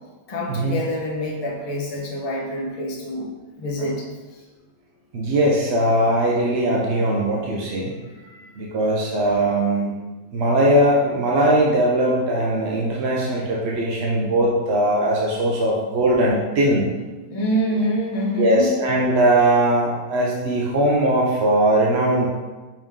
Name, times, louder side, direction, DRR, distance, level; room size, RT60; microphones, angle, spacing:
voice 1, 0.3-3.3 3.6-4.1 4.3-4.4 8.1-8.5 17.3-18.7, equal, 25° left, -4 dB, 0.8 m, -26 dB
voice 2, 5.1-7.9 8.6-9.9 10.3-16.9 18.4-22.3, right 1 dB, 55° right, -3 dB, 0.7 m, -20 dB
5.3 x 5.2 x 3.6 m, 1.2 s
omnidirectional pair, 1.9 m